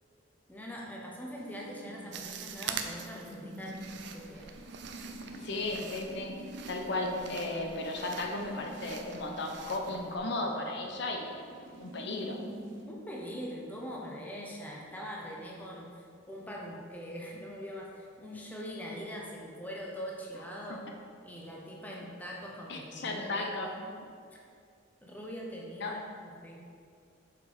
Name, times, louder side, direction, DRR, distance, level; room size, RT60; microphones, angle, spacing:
voice 1, 0.5-4.5 12.9-20.9 21.2-24.0 25.0-26.7, equal, 10° left, -3 dB, 0.9 m, -42 dB
sound 1, 1.4-12.8, right 1 dB, 80° right, 1.1 m, -48 dB
sound 2, 2.1-10.2, right 7 dB, 60° right, 0.5 m, -44 dB
voice 2, 5.3-6.4 6.7-11.4 11.8-12.4 22.7-23.7 25.8-25.9, left 2 dB, 60° left, 2 dB, 0.7 m, -35 dB
6.9 x 4.9 x 4.9 m, 2.3 s
head